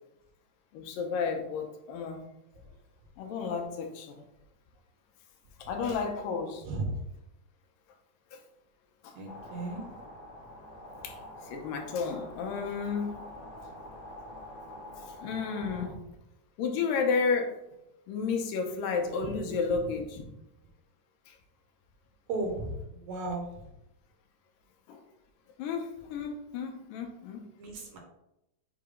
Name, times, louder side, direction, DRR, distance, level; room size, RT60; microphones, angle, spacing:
voice 1, 0.7-2.2 3.2-4.2 5.6-6.6 8.3-8.4 9.0-9.2 11.0-11.2 11.4-13.2 15.1-15.9 16.6-17.5 18.1-20.2 21.3-21.4 24.9-25.0 25.6-27.4, left 5 dB, 85° left, 3 dB, 2.5 m, -32 dB
voice 2, 9.2-9.8 22.3-23.4 27.6-28.0, right 2 dB, 70° right, 1 dB, 2.0 m, -35 dB
sound 1, 9.3-15.9, left 1 dB, 65° left, 1.8 m, -46 dB
6.5 x 2.9 x 5.0 m, 0.87 s
omnidirectional pair, 3.8 m